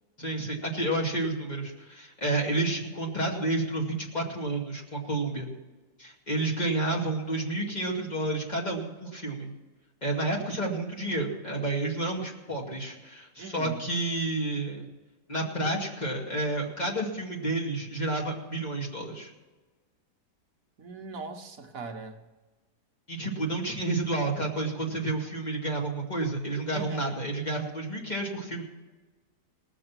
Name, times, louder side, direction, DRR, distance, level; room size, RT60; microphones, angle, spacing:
voice 1, 0.2-5.5 6.0-9.5 10.0-14.9 15.3-19.3 23.1-28.6, right 2 dB, 25° left, -1 dB, 2.5 m, -30 dB
voice 2, 13.4-13.8 20.8-22.2 26.7-27.2, right 4 dB, 55° right, 4 dB, 1.5 m, -40 dB
19.0 x 7.8 x 6.0 m, 1.2 s
omnidirectional pair, 1.8 m